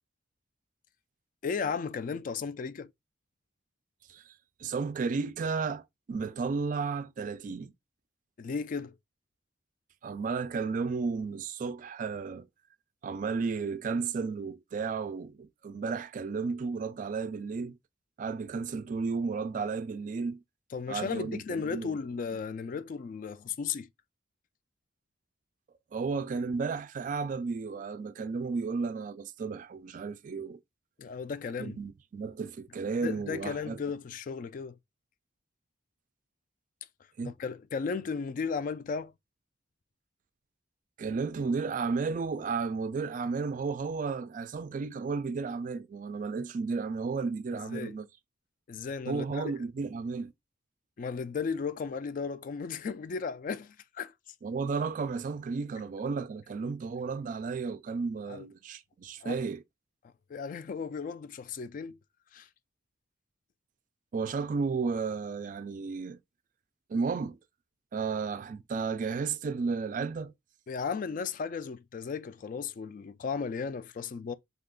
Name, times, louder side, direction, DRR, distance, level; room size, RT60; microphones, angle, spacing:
voice 1, 1.4-2.9 8.4-9.0 20.7-23.9 31.0-31.8 33.0-34.8 37.2-39.1 47.5-48.0 48.7-49.5 51.0-54.1 58.3-58.5 59.2-59.4 60.3-62.0 62.3-62.5 70.7-74.3, left 5 dB, 45° left, 0.3 m, -35 dB
voice 2, 4.6-7.7 10.0-12.5 13.0-17.8 18.2-20.4 20.9-22.0 25.9-30.6 31.6-33.8 37.2-37.3 41.0-48.1 49.1-50.3 54.4-59.6 64.1-66.2 66.9-67.4 67.9-70.3, right 4 dB, 45° right, 0.3 m, -33 dB
2.8 x 2.4 x 3.6 m
head